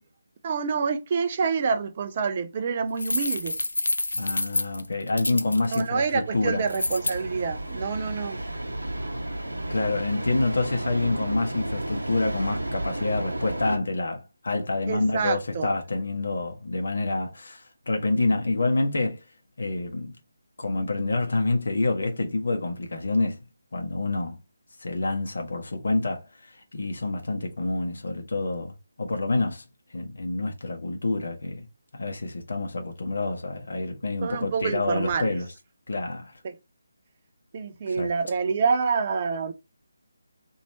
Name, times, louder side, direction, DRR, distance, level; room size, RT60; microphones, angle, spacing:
voice 1, 0.4-3.6 5.7-8.4 14.9-15.7 34.2-35.3 36.4-36.5 37.5-39.5, right 5 dB, 30° right, 0.5 m, -27 dB
sound 1, 3.0-5.8 6.7-7.2, left 2 dB, 70° left, 0.4 m, -28 dB
voice 2, 4.1-6.7 9.7-19.2 19.6-20.2 20.6-23.4 23.7-24.4 24.8-29.6 29.9-31.7 31.9-35.5 35.9-36.3 37.9-38.1, left 2 dB, 55° left, 0.9 m, -27 dB
sound 2, 6.2-13.8, right 1 dB, 70° right, 0.8 m, -32 dB
3.1 x 2.7 x 4.1 m
figure-of-eight pair, 150°, 0 cm